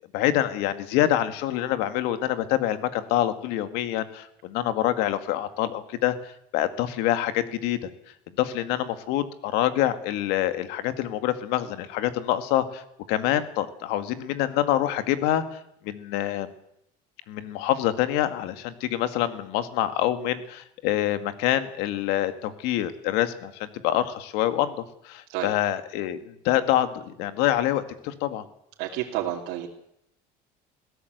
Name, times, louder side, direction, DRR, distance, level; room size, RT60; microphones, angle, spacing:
voice 1, 0.1-7.9 8.4-16.5 17.3-28.5, left 12 dB, 75° left, 10 dB, 2.1 m, -26 dB
voice 2, 28.8-29.7, right 12 dB, 85° right, -2 dB, 2.9 m, -30 dB
21.5 x 17.0 x 8.2 m, 0.77 s
cardioid pair, 175°, 17 cm